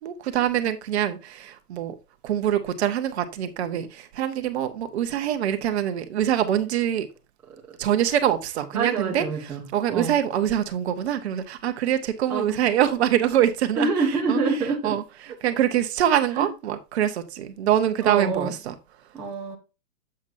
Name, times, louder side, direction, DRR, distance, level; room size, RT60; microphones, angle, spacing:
voice 1, 0.0-1.9 2.2-7.1 7.8-13.9 14.3-14.4 14.8-15.0 15.4-18.7, right 10 dB, 45° right, 1.1 m, -24 dB
voice 2, 8.7-10.2 12.3-12.6 13.8-15.0 16.4-16.5 18.0-18.5 19.1-19.6, right 4 dB, 5° right, 0.6 m, -26 dB
7.7 x 7.2 x 2.7 m
hypercardioid pair, 150°, 46 cm